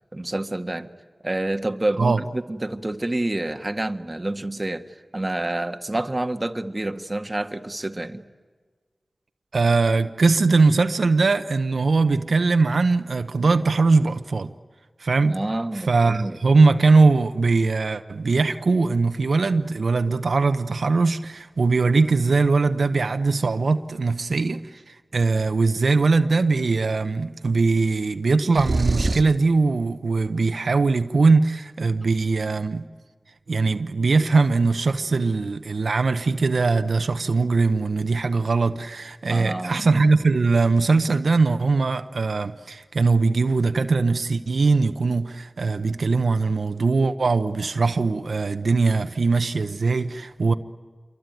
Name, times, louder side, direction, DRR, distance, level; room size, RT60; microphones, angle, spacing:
voice 1, 0.1-0.9 1.2-8.2 15.2-16.4 39.3-40.1, right 1 dB, 30° right, 1.5 m, -28 dB
voice 2, 9.5-14.5 15.0-15.4 15.9-32.8 33.5-50.5, right 3 dB, 85° right, 0.9 m, -21 dB
sound 1, 28.5-29.4, right 2 dB, 55° right, 1.7 m, -24 dB
27.5 x 23.5 x 9.2 m
wide cardioid pair, 55°, 0 cm